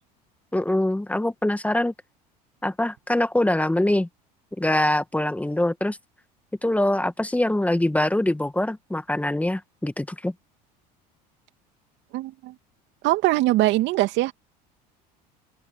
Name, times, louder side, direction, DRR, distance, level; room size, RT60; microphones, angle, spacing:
voice 1, 0.5-1.9 2.6-4.1 4.6-6.0 6.6-10.3, left 1 dB, 5° left, 2.0 m, -23 dB
voice 2, 12.1-12.5 13.0-14.3, right 17 dB, 60° right, 2.4 m, -22 dB
open air
hypercardioid pair, 75°, 21 cm